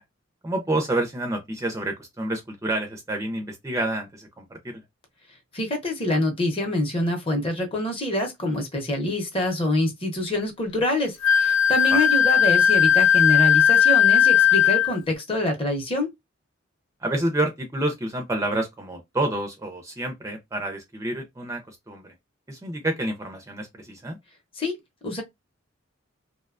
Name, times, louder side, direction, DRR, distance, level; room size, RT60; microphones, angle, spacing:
voice 1, 0.4-4.6 11.9-12.0 17.0-22.1 22.5-24.2, right 1 dB, 15° right, 0.4 m, -28 dB
voice 2, 5.5-16.1 24.6-24.7 25.0-25.2, left 1 dB, 25° left, 0.6 m, -26 dB
Wind instrument woodwind instrument, 11.2-14.9, left 9 dB, 60° left, 0.3 m, -17 dB
2.7 x 2.1 x 2.3 m
head